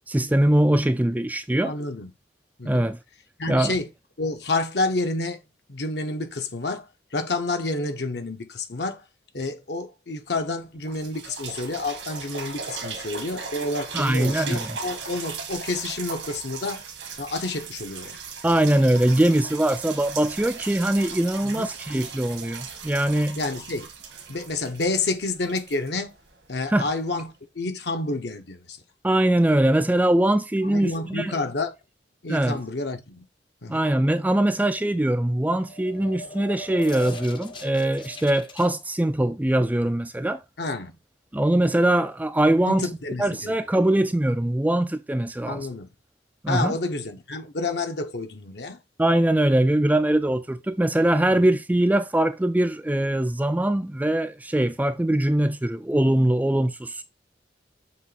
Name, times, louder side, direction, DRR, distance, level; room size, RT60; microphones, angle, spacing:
voice 1, 0.1-1.7 2.6-3.0 3.5-3.7 13.9-14.7 18.4-23.4 26.7-26.9 29.0-31.3 32.3-32.6 33.7-40.4 41.3-42.9 43.2-45.7 46.4-46.8 49.0-57.0, right 1 dB, 10° right, 0.3 m, -22 dB
voice 2, 1.6-2.1 2.6-2.8 3.4-3.9 4.2-5.4 5.7-9.0 9.3-16.9 17.2-18.2 21.4-21.7 23.4-23.9 24.3-26.1 26.5-28.8 30.6-31.7 32.2-33.2 33.6-33.8 40.6-40.9 42.6-43.5 45.5-45.9 46.5-48.8, left 2 dB, 65° left, 1.0 m, -29 dB
sound 1, 10.3-10.4 10.8-26.6 27.2-27.3, right 5 dB, 85° right, 1.8 m, -37 dB
sound 2, 35.4-38.7, left 1 dB, 25° left, 0.7 m, -39 dB
7.3 x 3.2 x 4.0 m
head